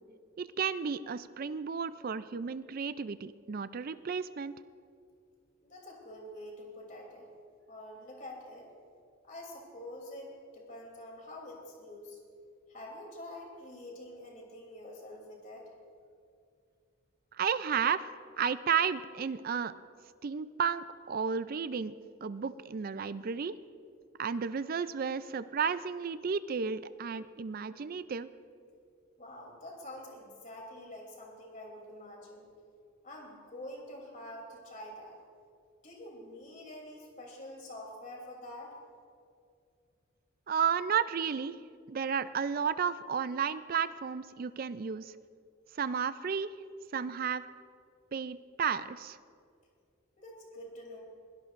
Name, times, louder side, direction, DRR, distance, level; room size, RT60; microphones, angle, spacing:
voice 1, 0.4-4.6 17.4-18.1 18.4-19.7 20.2-22.0 22.2-23.6 24.2-28.3 40.5-41.6 41.9-45.1 45.8-46.5 46.9-47.5 48.1-49.2, right 6 dB, 45° right, 14 dB, 0.4 m, -32 dB
voice 2, 5.6-7.3 7.7-8.7 9.2-12.2 12.7-15.7 29.2-32.4 33.0-35.2 35.8-38.7 50.2-51.0, left 1 dB, 40° left, -1 dB, 3.1 m, -46 dB
22.0 x 17.0 x 2.5 m, 2.3 s
head